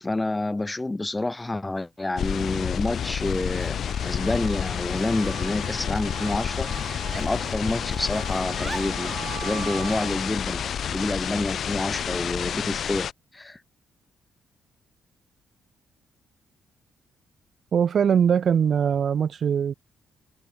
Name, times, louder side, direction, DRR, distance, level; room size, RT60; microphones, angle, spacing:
voice 1, 0.0-6.7 7.1-10.6 10.9-13.1 13.3-13.6, left 2 dB, 15° left, 1.7 m, -28 dB
Giggle, 1.7-1.8 2.1-2.6 3.2-4.3 4.9-6.3 6.7-7.8 8.0-9.4, right 2 dB, 20° right, 3.8 m, -43 dB
sound 1, 2.2-13.1, left 8 dB, 60° left, 0.7 m, -29 dB
sound 2, 3.6-12.2, right 13 dB, 80° right, 5.1 m, -42 dB
voice 2, 17.7-19.7, right 7 dB, 55° right, 1.1 m, -21 dB
cardioid pair, 90°, 0 cm